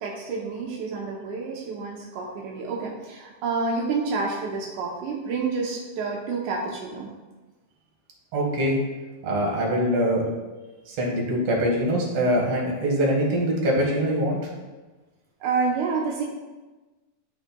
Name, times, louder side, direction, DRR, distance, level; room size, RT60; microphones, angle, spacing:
voice 1, 0.0-7.1 15.4-16.2, right 4 dB, 85° right, -2 dB, 1.7 m, -29 dB
voice 2, 8.3-8.8 9.2-10.2 10.9-14.4, equal, 55° right, -2 dB, 2.0 m, -23 dB
12.5 x 4.9 x 2.2 m, 1.2 s
omnidirectional pair, 4.5 m